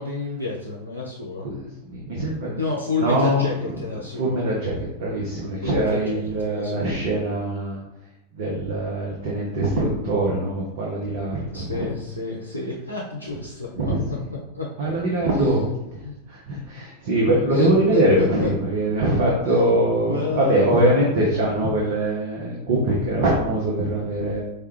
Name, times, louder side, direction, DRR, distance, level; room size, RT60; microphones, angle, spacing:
voice 1, 0.0-1.5 2.6-4.4 5.6-6.9 11.5-14.9 15.3-15.5 16.0-16.2 17.5-18.5 19.5-19.6 20.1-20.9, left 3 dB, 90° left, -2 dB, 0.5 m, -30 dB
voice 2, 1.4-2.6 3.0-3.4 4.2-7.8 8.3-11.9 13.8-14.0 14.8-16.0 16.3-24.4, right 1 dB, 55° right, -3 dB, 0.8 m, -22 dB
4.7 x 2.3 x 3.1 m, 0.90 s
figure-of-eight pair, 90°, 0 cm